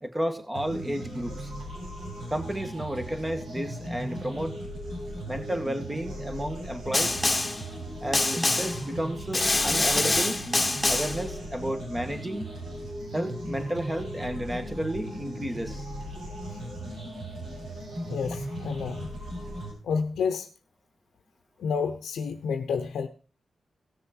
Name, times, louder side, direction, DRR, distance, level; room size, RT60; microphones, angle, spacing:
voice 1, 0.0-1.5 2.3-4.6 5.3-7.2 8.0-10.4 10.9-12.5 13.1-15.9, right 1 dB, 15° right, 6 dB, 2.1 m, -32 dB
sound 1, 0.5-19.7, equal, 80° right, 6.7 m, -37 dB
Snare drum, 6.9-7.6 8.1-8.8 9.3-11.2, left 2 dB, 25° left, 1.4 m, -25 dB
voice 2, 18.1-19.1 19.8-20.5 21.6-23.1, left 6 dB, 90° left, 6 dB, 0.8 m, -29 dB
17.0 x 6.8 x 4.5 m, 0.37 s
cardioid pair, 60°, 0 cm